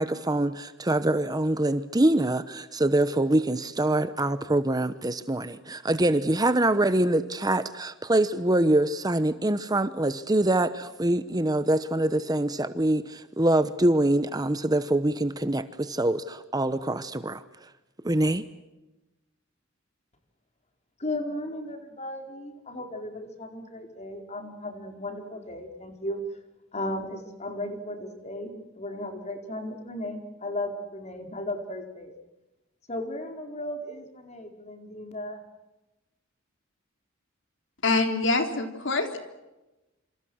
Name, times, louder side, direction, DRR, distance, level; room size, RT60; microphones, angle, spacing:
voice 1, 0.0-17.4 18.0-18.4, right 1 dB, 20° right, 12 dB, 1.0 m, -24 dB
voice 2, 21.0-26.2 26.7-32.1 32.9-35.4, left 1 dB, 35° left, 4 dB, 4.6 m, -35 dB
voice 3, 37.8-39.2, left 3 dB, 65° left, 6 dB, 3.7 m, -25 dB
28.0 x 27.0 x 6.4 m, 1.0 s
head